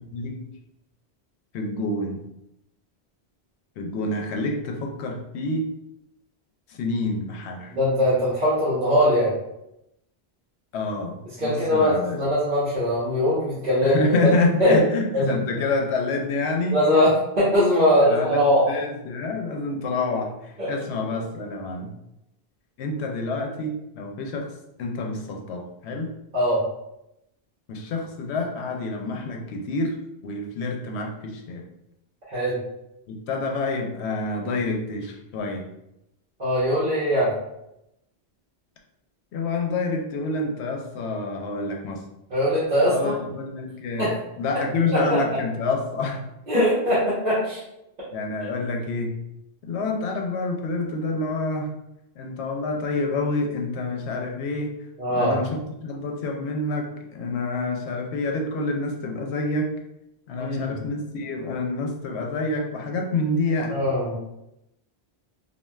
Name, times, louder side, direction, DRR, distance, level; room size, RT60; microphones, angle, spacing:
voice 1, 0.1-0.5 1.5-2.2 3.8-5.7 6.8-7.7 10.7-12.2 13.8-16.8 18.0-20.4 20.6-21.9 22.8-24.5 24.8-26.1 27.7-31.6 33.1-35.7 39.3-42.0 42.9-44.1 44.4-46.2 46.5-46.7 48.1-49.2 49.6-51.8 52.2-54.8 55.1-59.8 60.3-63.8, left 2 dB, 80° left, 2 dB, 0.8 m, -27 dB
voice 2, 7.8-9.3 11.4-14.2 14.6-14.7 15.1-15.3 16.7-18.7 26.3-26.6 32.3-32.6 36.4-37.3 42.3-43.2 44.0-44.1 44.9-45.2 46.5-47.6 55.0-55.4 60.4-60.7 63.7-64.2, equal, 45° right, -9 dB, 0.9 m, -21 dB
3.1 x 2.4 x 2.2 m, 0.84 s
omnidirectional pair, 1.1 m